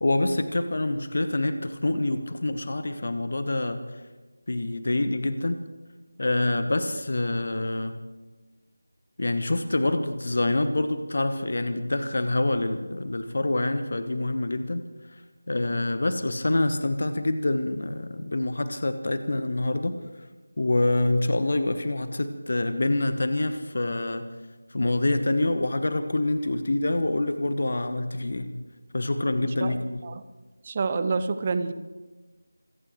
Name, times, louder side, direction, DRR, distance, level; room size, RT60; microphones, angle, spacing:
voice 1, 0.0-3.8 4.5-5.6 6.2-7.9 9.2-14.8 15.5-20.0 20.6-24.2 24.7-28.5 28.9-30.0, left 2 dB, 45° left, 10 dB, 1.1 m, -26 dB
voice 2, 29.4-30.2 30.6-31.7, right 4 dB, 25° right, 12 dB, 0.7 m, -28 dB
26.5 x 17.0 x 3.2 m, 1.2 s
figure-of-eight pair, 165°, 0 cm